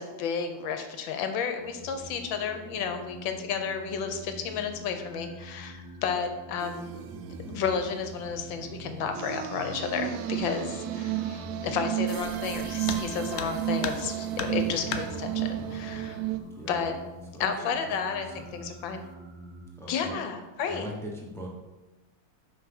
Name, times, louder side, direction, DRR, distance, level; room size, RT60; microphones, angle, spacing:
voice 1, 0.0-6.9 7.5-16.2 16.7-17.0 17.4-19.0 19.9-20.9, left 6 dB, 70° left, 7 dB, 1.5 m, -32 dB
sound 1, 1.6-19.7, right 1 dB, 65° right, 1.9 m, -46 dB
sound 2, 6.6-16.4, right 12 dB, 80° right, 0.9 m, -33 dB
voice 2, 10.5-10.9 16.5-16.8 17.3-17.7 18.2-18.4 19.8-20.1 20.6-21.5, equal, ahead, -2 dB, 0.5 m, -41 dB
sound 3, 12.9-13.1 13.4-14.1 14.4-15.1 16.3-16.4 16.8-16.9 17.7-18.1 18.4-18.8, left 7 dB, 90° left, 0.7 m, -35 dB
5.7 x 4.6 x 5.9 m, 1.1 s
omnidirectional pair, 2.3 m